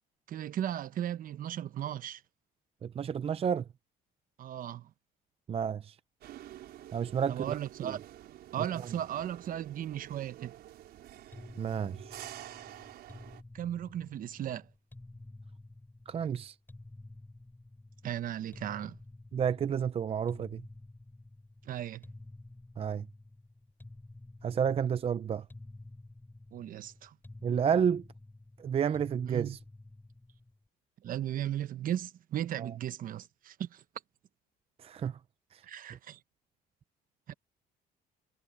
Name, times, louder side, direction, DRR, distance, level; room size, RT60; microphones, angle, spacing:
voice 1, 0.3-2.2 4.4-4.9 7.3-8.0 8.5-10.5 13.5-14.7 18.0-19.0 21.7-22.0 26.5-27.1 29.3-29.6 31.0-33.8 35.6-36.2 37.3-37.4, right 11 dB, 55° right, 1.0 m, -36 dB
voice 2, 2.8-3.6 5.5-5.9 6.9-7.9 11.6-12.2 16.1-16.5 19.3-20.6 22.8-23.0 24.4-25.4 27.4-28.0 28.6-29.6 32.6-32.7 34.8-35.2 35.5-35.6, right 7 dB, 35° right, 0.6 m, -31 dB
sound 1, 6.2-13.4, right 13 dB, 70° right, 5.2 m, -49 dB
sound 2, 11.3-30.6, left 2 dB, 10° left, 6.1 m, -51 dB
cardioid pair, 110°, 17 cm